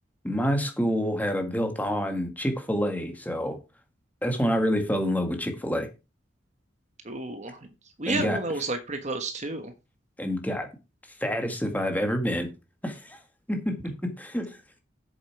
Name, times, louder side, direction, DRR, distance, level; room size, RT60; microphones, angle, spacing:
voice 1, 0.2-3.6 4.2-5.9 8.1-8.4 10.2-10.7 11.2-12.5 12.8-13.2 13.5-14.6, equal, 10° left, 1.9 m, -27 dB
voice 2, 7.0-7.6 8.0-9.7, right 2 dB, 35° right, 1.3 m, -31 dB
8.5 x 7.3 x 4.7 m
head